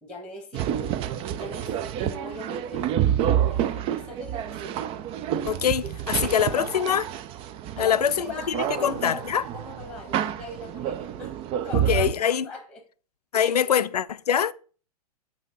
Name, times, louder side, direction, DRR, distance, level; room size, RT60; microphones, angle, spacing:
voice 1, 0.0-1.0 1.3-4.9 5.8-5.9 6.2-7.0 7.7-9.2 9.5-11.4 11.7-12.8 13.3-13.6 14.3-14.5, left 1 dB, 5° left, 1.7 m, -40 dB
sound 1, 0.5-12.1, right 10 dB, 30° right, 0.4 m, -28 dB
voice 2, 5.5-7.0 7.8-9.4 11.7-12.4 13.3-14.5, left 8 dB, 80° left, 0.4 m, -24 dB
7.7 x 2.8 x 5.4 m
figure-of-eight pair, 105°, 20 cm